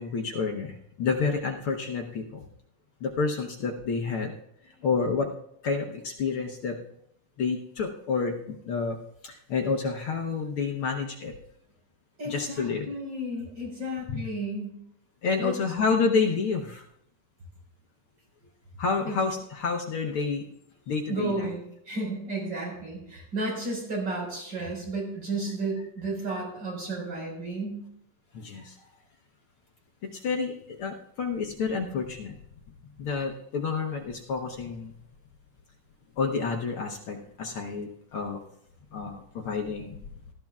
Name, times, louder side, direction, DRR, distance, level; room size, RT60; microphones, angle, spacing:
voice 1, 0.0-2.4 3.0-4.3 4.8-5.3 5.6-6.8 7.4-9.0 9.2-11.3 12.3-12.9 14.1-14.2 15.2-16.8 18.8-20.5 20.9-21.5 28.3-28.8 30.1-32.3 33.0-34.9 36.2-38.4 38.9-40.0, left 5 dB, 75° left, 1 dB, 1.2 m, -29 dB
voice 2, 12.2-14.8 15.4-15.5 19.0-19.2 21.1-27.8, right 2 dB, 35° right, -1 dB, 5.5 m, -33 dB
19.0 x 12.5 x 2.4 m, 0.74 s
omnidirectional pair, 3.7 m